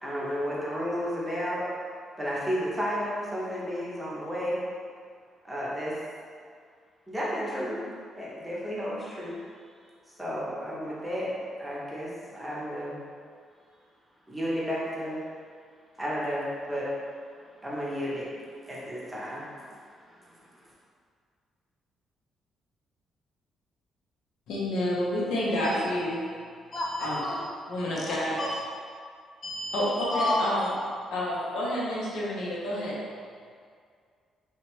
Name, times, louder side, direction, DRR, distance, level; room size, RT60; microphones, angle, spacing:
voice 1, 0.0-1.7 2.2-4.6 5.4-6.0 7.1-7.8 8.1-9.4 10.2-11.3 11.6-13.0 14.3-15.2 16.0-16.9 17.6-18.3 18.6-20.7, equal, 10° right, -7 dB, 0.7 m, -32 dB
voice 2, 24.5-26.2 27.0-27.3 27.7-28.4 29.7-30.7 31.1-32.9, left 1 dB, 85° left, -6 dB, 0.6 m, -29 dB
voice 3, 26.7-27.4 28.1-28.5 29.4-29.8 30.1-30.3, left 1 dB, 40° left, -4 dB, 0.6 m, -31 dB
2.7 x 2.1 x 3.0 m, 2.1 s
cardioid pair, 90°, 0 cm